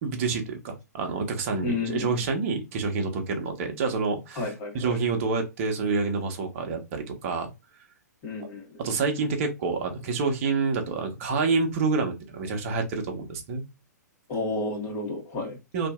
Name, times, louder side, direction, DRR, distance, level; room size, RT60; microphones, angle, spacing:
voice 1, 0.0-7.5 8.4-8.5 8.8-13.6 15.7-15.9, right 4 dB, 45° right, 0.8 m, -28 dB
voice 2, 1.6-2.2 4.4-5.0 8.2-8.8 14.3-15.6, left 3 dB, 30° left, 1.3 m, -31 dB
2.8 x 2.4 x 2.3 m
hypercardioid pair, 120°, 9 cm